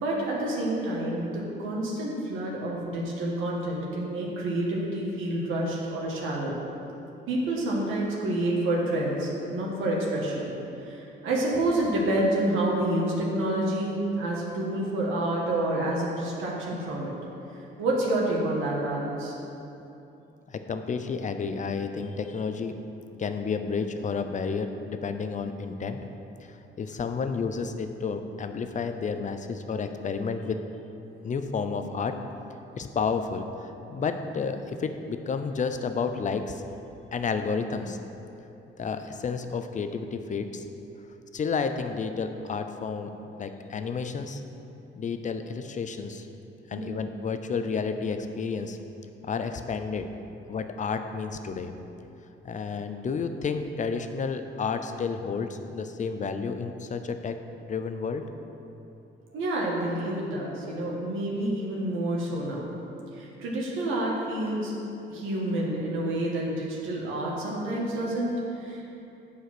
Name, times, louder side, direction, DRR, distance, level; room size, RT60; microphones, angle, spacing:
voice 1, 0.0-6.5 7.3-10.5 10.8-17.1 17.8-19.3 46.7-46.9 59.3-62.7 63.2-64.7 65.1-68.9, right 1 dB, 85° right, -3 dB, 1.5 m, -28 dB
voice 2, 20.5-22.8 23.2-26.0 26.4-30.6 31.2-32.2 32.8-36.6 37.1-38.0 38.8-40.7 41.3-43.1 43.4-44.4 45.0-46.3 46.7-48.8 49.2-50.1 50.5-51.7 52.4-58.2, left 5 dB, 40° left, 8 dB, 0.6 m, -31 dB
8.2 x 4.9 x 5.9 m, 2.8 s
cardioid pair, 90°, 20 cm